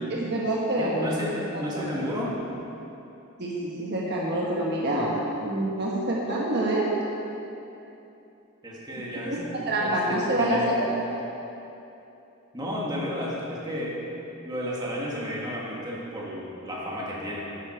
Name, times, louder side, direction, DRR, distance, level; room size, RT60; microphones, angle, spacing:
voice 1, 0.1-0.9 1.5-1.8 3.4-3.5 3.8-5.1 5.4-6.9 9.3-9.4 9.7-11.2, right 1 dB, 50° right, -4 dB, 1.3 m, -26 dB
voice 2, 0.8-2.3 8.6-9.5 9.8-10.8 12.5-14.0 14.4-17.4, equal, 20° right, -5 dB, 1.9 m, -32 dB
11.5 x 9.9 x 4.6 m, 2.9 s
head